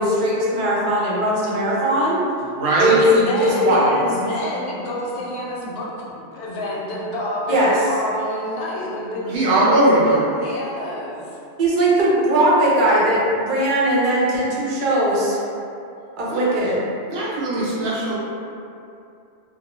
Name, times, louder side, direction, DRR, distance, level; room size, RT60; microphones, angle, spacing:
voice 1, 0.0-2.2 2.8-3.0 3.4-4.0 7.5-7.7 11.6-15.4 16.2-16.8, right 1 dB, 55° right, -6 dB, 0.7 m, -19 dB
voice 2, 2.5-3.0 9.2-10.2 16.3-16.5 17.1-18.2, right 1 dB, 85° right, -6 dB, 0.8 m, -19 dB
voice 3, 3.0-5.9 6.2-11.3, left 1 dB, 70° left, -4 dB, 0.8 m, -28 dB
2.3 x 2.1 x 2.9 m, 2.6 s
omnidirectional pair, 1.1 m